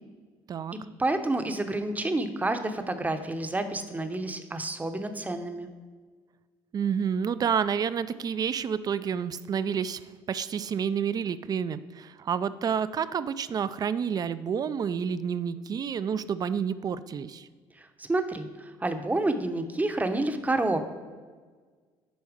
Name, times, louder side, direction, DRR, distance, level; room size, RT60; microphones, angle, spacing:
voice 1, 1.0-5.7 17.8-20.8, right 2 dB, 15° right, 8 dB, 0.7 m, -29 dB
voice 2, 6.7-10.0 10.3-17.5, right 7 dB, 40° right, 15 dB, 0.4 m, -29 dB
7.1 x 4.3 x 4.9 m, 1.5 s
supercardioid pair, 80°, 10 cm